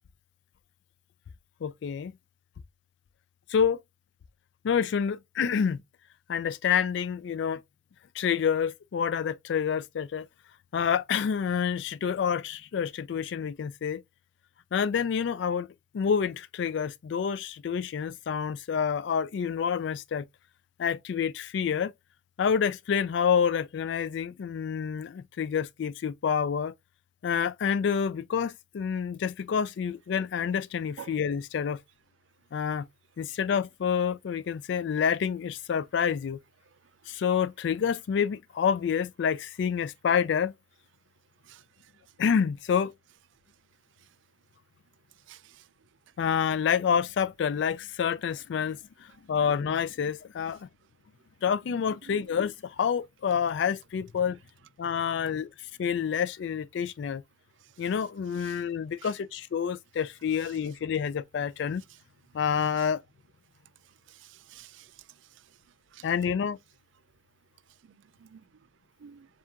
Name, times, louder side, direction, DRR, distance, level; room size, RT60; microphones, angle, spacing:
voice 1, 1.6-2.1 3.5-3.8 4.6-5.8 6.3-7.6 8.1-10.3 10.7-14.0 14.7-20.3 20.8-21.9 22.4-26.7 27.2-31.8 32.5-32.9 33.2-36.4 37.1-40.5 42.2-42.9 46.2-48.8 49.3-50.7 51.4-54.4 54.8-55.5 55.8-57.2 57.8-61.8 62.3-63.0 66.0-66.6, left 7 dB, 60° left, 0.3 m, -28 dB
voice 2, 45.3-45.6 58.4-58.6 64.1-64.9 65.9-66.0 68.2-68.4 69.0-69.3, right 8 dB, 70° right, 0.4 m, -48 dB
7.2 x 2.4 x 2.4 m
head